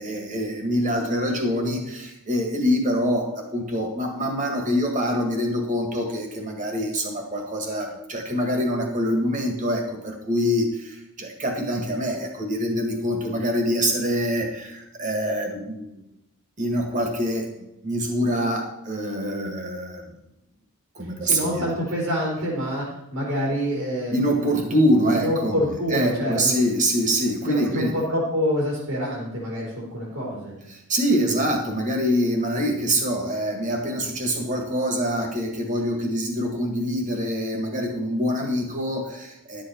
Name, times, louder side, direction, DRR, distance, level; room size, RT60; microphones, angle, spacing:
voice 1, 0.0-16.0 16.6-17.5 17.8-20.0 21.0-21.7 24.1-25.6 25.9-27.9 30.7-39.6, equal, 35° right, 3 dB, 1.9 m, -25 dB
voice 2, 21.2-22.8 23.1-24.8 25.1-26.6 27.5-30.5, equal, 75° right, -4 dB, 3.5 m, -27 dB
11.5 x 7.8 x 4.6 m, 0.85 s
head